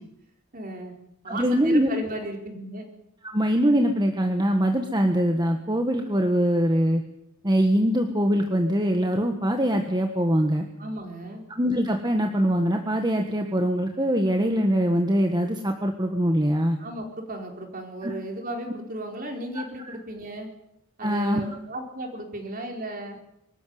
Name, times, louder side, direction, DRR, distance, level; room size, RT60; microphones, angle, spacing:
voice 1, 0.5-0.9 1.2-2.9 10.8-11.4 16.8-20.5 21.0-23.2, right 1 dB, 40° right, 2 dB, 4.6 m, -35 dB
voice 2, 1.3-1.9 3.2-7.0 7.4-10.6 11.6-16.8 18.0-18.1 19.5-20.0 21.0-21.4, equal, 20° right, 4 dB, 1.6 m, -23 dB
24.0 x 14.0 x 9.6 m, 0.82 s
head